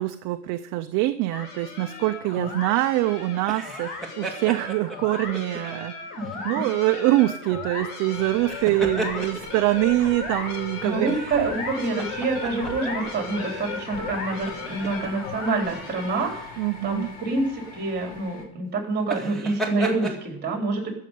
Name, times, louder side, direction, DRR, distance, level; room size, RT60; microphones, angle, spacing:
voice 1, 0.0-5.9 6.4-11.2 16.6-17.1, right 17 dB, 40° right, 8 dB, 0.6 m, -24 dB
sound 1, 1.3-16.5, left 4 dB, 70° left, 5.1 m, -36 dB
sound 2, 3.4-5.6 6.2-6.4 8.3-9.6 11.1-13.1 13.5-13.6 14.3-15.1 16.2-16.4 19.0-20.2, right 2 dB, ahead, 2.1 m, -34 dB
sound 3, 8.0-18.4, left 3 dB, 50° left, 4.1 m, -42 dB
voice 2, 10.8-16.5 16.8-20.9, right 3 dB, 20° right, 2 dB, 4.0 m, -27 dB
14.5 x 6.6 x 9.2 m, 0.72 s
supercardioid pair, 145°, 47 cm